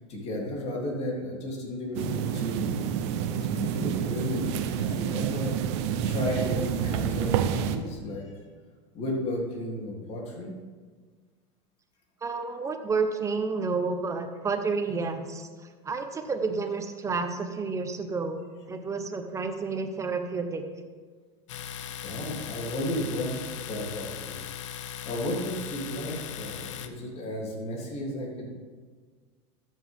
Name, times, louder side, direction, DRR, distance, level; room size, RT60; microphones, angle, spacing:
voice 1, 0.0-2.7 3.5-5.5 6.0-8.3 8.9-10.5 21.7-24.4 25.0-28.5, left 1 dB, 45° left, -2 dB, 3.3 m, -33 dB
sound 1, 1.9-7.8, right 9 dB, 70° right, 0.8 m, -28 dB
voice 2, 12.2-15.5 15.8-18.4 18.7-20.6, right 4 dB, 20° right, 6 dB, 1.1 m, -30 dB
Domestic sounds home sounds, 21.5-26.9, left 10 dB, 85° left, 0.8 m, -38 dB
13.0 x 7.5 x 3.7 m, 1.5 s
supercardioid pair, 110°, 15 cm